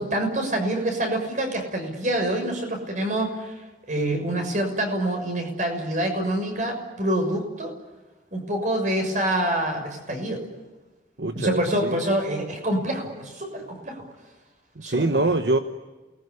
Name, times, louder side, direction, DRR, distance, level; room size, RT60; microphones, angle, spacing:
voice 1, 0.0-3.5 3.9-7.7 8.3-10.4 11.3-14.1 14.8-15.2, right 1 dB, 45° right, 4 dB, 6.4 m, -26 dB
voice 2, 11.2-12.0 14.9-15.6, right 2 dB, 75° right, 7 dB, 1.2 m, -24 dB
28.5 x 21.0 x 9.9 m, 1.2 s
head